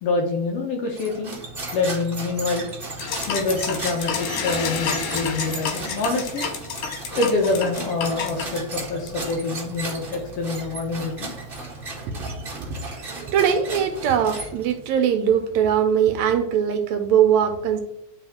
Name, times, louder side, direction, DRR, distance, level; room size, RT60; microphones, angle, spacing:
voice 1, 0.0-1.4 1.7-2.7 3.3-6.4 7.2-11.3, left 3 dB, 65° left, 1 dB, 1.7 m, -26 dB
sound 1, 0.9-14.9, right 2 dB, 35° right, 0.9 m, -35 dB
sound 2, 3.0-9.8, left 6 dB, 85° left, 2.5 m, -30 dB
voice 2, 12.1-12.4 12.9-17.8, right 8 dB, 75° right, 7 dB, 1.8 m, -21 dB
9.9 x 3.6 x 3.5 m, 0.77 s
omnidirectional pair, 3.5 m